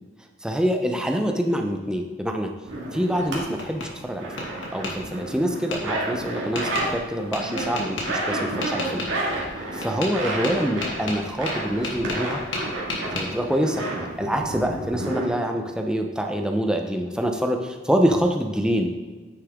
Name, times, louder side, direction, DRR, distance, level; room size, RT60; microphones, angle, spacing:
voice 1, 0.4-2.5 2.9-4.5 4.7-9.0 9.7-12.4 13.1-13.8 14.2-18.9, equal, 5° right, 3 dB, 0.7 m, -25 dB
sound 1, 2.7-3.4 3.7-6.9 7.2-15.3, right 1 dB, 75° right, 2.1 m, -31 dB
Tap, 2.9-3.9 4.4-4.9 5.7-5.8 6.6-6.9 7.3-8.1 8.6-9.1 9.8-10.2 10.4-12.3 12.5-13.3, left 3 dB, 85° left, 1.9 m, -31 dB
9.6 x 6.6 x 3.6 m, 1.4 s
head